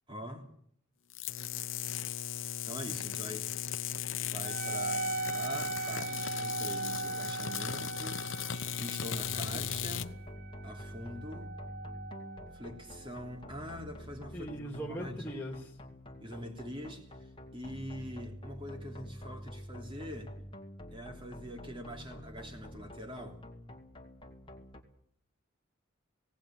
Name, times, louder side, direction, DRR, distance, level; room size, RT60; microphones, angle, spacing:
voice 1, 0.1-0.5 2.4-3.5 4.2-10.1 10.6-11.5 12.5-14.5 14.9-15.2 16.2-20.3 20.9-23.4, equal, 25° right, 3.2 m, -44 dB
sound 1, 1.1-10.1, left 9 dB, 65° left, 0.8 m, -37 dB
Wind instrument woodwind instrument, 4.4-13.4, right 3 dB, 45° right, 0.8 m, -39 dB
sound 2, 9.2-24.8, equal, 25° left, 2.2 m, -47 dB
voice 2, 9.3-9.7 14.3-15.8, right 1 dB, 10° left, 3.1 m, -41 dB
18.5 x 18.0 x 8.9 m
head